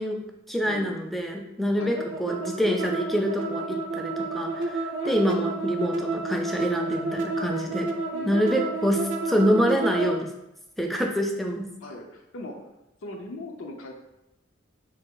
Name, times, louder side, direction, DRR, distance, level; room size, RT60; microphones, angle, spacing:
voice 1, 0.0-7.9 8.2-10.3 10.8-11.7, equal, ahead, 2 dB, 0.4 m, -26 dB
voice 2, 0.6-0.9 1.7-2.0 5.0-5.2 8.1-8.6 11.8-12.6 13.0-13.9, left 2 dB, 90° left, 1 dB, 0.5 m, -39 dB
sound 1, 1.9-10.2, right 3 dB, 70° right, 0.4 m, -30 dB
3.4 x 2.7 x 3.7 m, 0.89 s
head